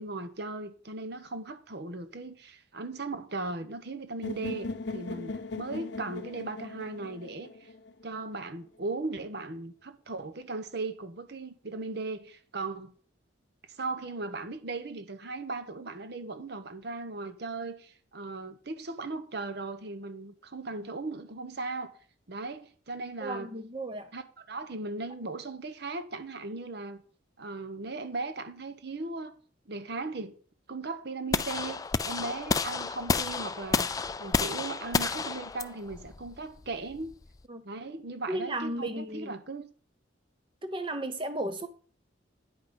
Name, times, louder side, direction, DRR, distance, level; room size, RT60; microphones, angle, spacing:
voice 1, 0.0-7.7 8.0-12.9 13.7-21.9 22.3-23.5 24.1-27.0 27.4-29.3 29.7-30.3 30.7-37.1 37.6-39.6, right 3 dB, 55° right, 1.0 m, -37 dB
sound 1, 4.2-8.2, left 3 dB, 60° left, 0.7 m, -38 dB
voice 2, 23.2-24.1 37.5-37.6 38.3-39.3 40.6-41.7, right 1 dB, 25° right, 0.9 m, -34 dB
sound 2, 31.3-37.4, left 4 dB, 20° left, 0.3 m, -30 dB
9.9 x 5.7 x 5.3 m
head